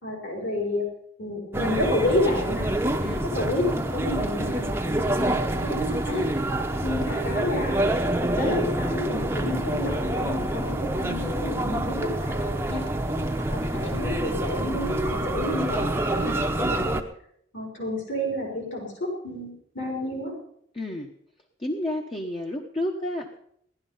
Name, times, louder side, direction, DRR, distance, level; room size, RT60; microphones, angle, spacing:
voice 1, 0.0-0.8 1.2-2.7 3.3-6.2 6.8-7.8 8.2-12.8 13.5-17.0 17.5-18.9 19.2-20.3, left 1 dB, 70° left, 0 dB, 4.7 m, -30 dB
sound 1, 1.5-17.0, right 1 dB, 10° right, 0.9 m, -27 dB
voice 2, 13.0-13.9 20.7-21.1 21.6-23.4, left 1 dB, 25° left, 1 dB, 1.0 m, -32 dB
17.0 x 11.5 x 5.6 m, 0.69 s
head